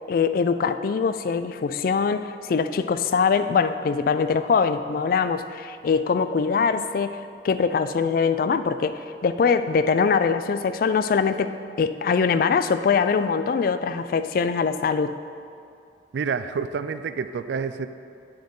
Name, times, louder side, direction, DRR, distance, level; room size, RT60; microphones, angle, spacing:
voice 1, 0.1-7.2 7.4-15.2, left 5 dB, 55° left, 11 dB, 0.3 m, -23 dB
voice 2, 16.1-17.9, right 5 dB, 80° right, 11 dB, 0.3 m, -28 dB
11.5 x 4.5 x 3.9 m, 2.4 s
head